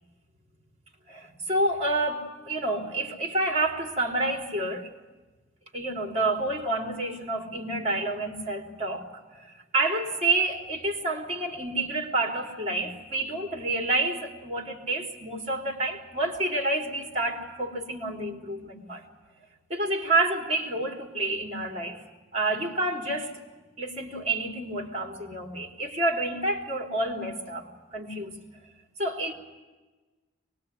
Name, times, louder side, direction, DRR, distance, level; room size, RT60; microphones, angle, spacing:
voice 1, 1.1-4.9 5.7-19.0 19.7-22.0 22.3-23.3 23.8-28.3 29.0-29.3, right 2 dB, 35° right, 2 dB, 3.8 m, -29 dB
24.0 x 21.0 x 9.7 m, 1.2 s
head